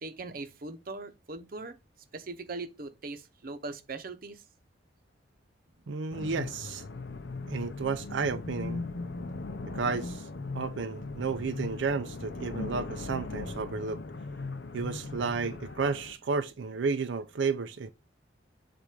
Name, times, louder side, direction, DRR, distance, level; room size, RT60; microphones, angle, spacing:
voice 1, 0.0-1.8 2.1-4.4, right 3 dB, 50° right, 0.8 m, -40 dB
voice 2, 5.9-6.8 7.5-8.8 9.7-10.3 10.5-14.0 14.7-17.9, right 4 dB, 85° right, 0.5 m, -32 dB
sound 1, 6.1-16.1, left 3 dB, 65° left, 0.6 m, -39 dB
7.4 x 2.6 x 5.0 m
head